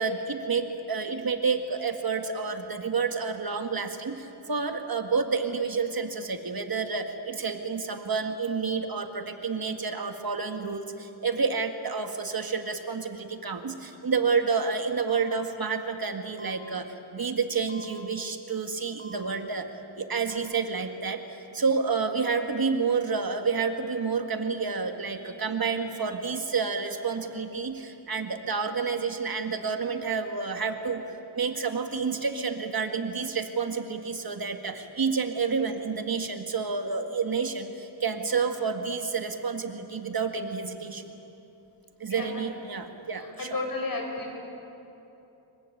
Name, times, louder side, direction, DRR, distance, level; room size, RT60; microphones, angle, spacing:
voice 1, 0.0-19.7 20.0-41.0 42.0-43.6, right 5 dB, 50° right, 6 dB, 1.8 m, -29 dB
sound 1, 15.1-15.2 16.4-16.5 17.7-17.8 19.0-19.2 20.3-20.4, right 2 dB, 85° left, 2.0 m, -46 dB
voice 2, 43.2-44.4, left 3 dB, 45° left, 2 dB, 6.4 m, -33 dB
26.5 x 23.0 x 9.1 m, 3.0 s
wide cardioid pair, 90°, 47 cm